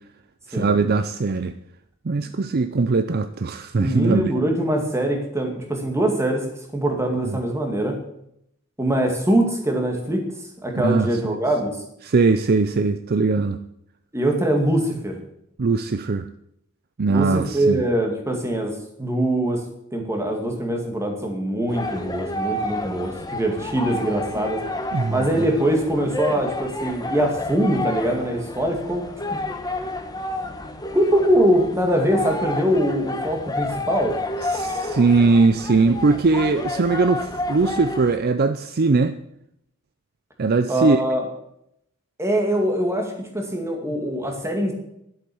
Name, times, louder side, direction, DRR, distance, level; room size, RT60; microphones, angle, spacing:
voice 1, 0.5-1.5 2.1-4.3 7.3-7.4 10.7-11.4 12.0-13.6 15.6-16.3 17.0-17.8 24.9-25.3 34.5-39.1 40.4-41.0, right 4 dB, 45° right, 11 dB, 0.5 m, -20 dB
voice 2, 3.8-6.5 6.7-8.0 8.8-10.2 10.6-11.8 14.1-15.2 17.1-19.6 19.9-24.6 25.1-29.1 30.9-34.2 40.7-41.3 42.2-44.7, right 1 dB, 15° right, 3 dB, 2.3 m, -22 dB
sound 1, 21.7-38.2, left 1 dB, 20° left, 1.1 m, -30 dB
11.5 x 8.1 x 7.1 m, 0.76 s
head